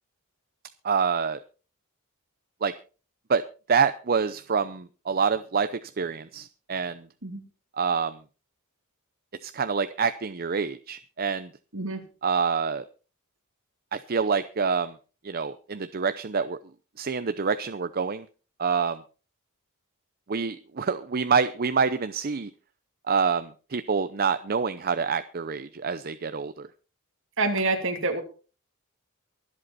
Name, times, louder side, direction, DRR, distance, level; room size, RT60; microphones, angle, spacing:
voice 1, 0.8-1.4 2.6-2.7 3.3-3.4 3.7-5.7 6.0-7.0 7.8-8.2 9.4-11.5 12.2-12.8 13.9-14.9 15.2-16.6 17.0-18.2 18.6-19.0 20.3-22.5 23.1-26.7, right 5 dB, 45° right, 11 dB, 0.7 m, -26 dB
voice 2, 27.4-28.2, right 3 dB, 60° right, 4 dB, 2.8 m, -26 dB
23.5 x 7.9 x 4.1 m, 0.35 s
head